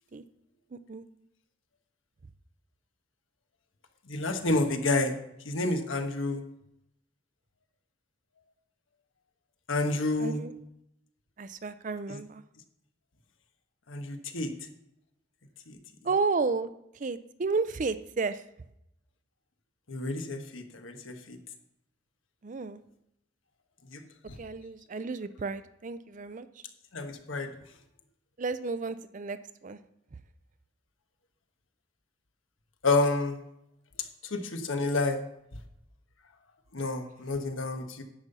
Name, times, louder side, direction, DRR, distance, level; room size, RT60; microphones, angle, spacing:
voice 1, 4.1-5.1 5.4-6.4 9.7-10.4 12.1-12.2 13.9-14.5 15.7-15.8 19.9-21.4 23.9-24.0 26.9-27.5 32.8-33.4 34.2-35.2 36.7-38.0, left 2 dB, 75° left, 6 dB, 1.3 m, -29 dB
voice 2, 10.2-10.5 11.4-12.4 16.0-16.7 17.0-18.4 22.4-22.8 24.4-26.5 28.4-29.4 29.6-29.8, right 4 dB, 40° right, 13 dB, 0.5 m, -32 dB
10.5 x 5.5 x 6.8 m, 0.81 s
head